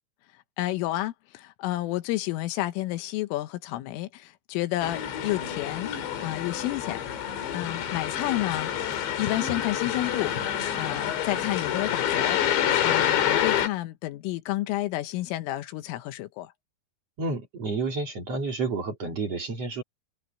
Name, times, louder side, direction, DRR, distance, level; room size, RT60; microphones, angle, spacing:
voice 1, 0.6-8.7 9.0-16.5, left 16 dB, 85° left, 3.7 m, -31 dB
sound 1, 4.8-13.7, left 10 dB, 65° left, 4.4 m, -27 dB
voice 2, 17.2-19.8, right 3 dB, 35° right, 3.6 m, -30 dB
omnidirectional pair, 5.7 m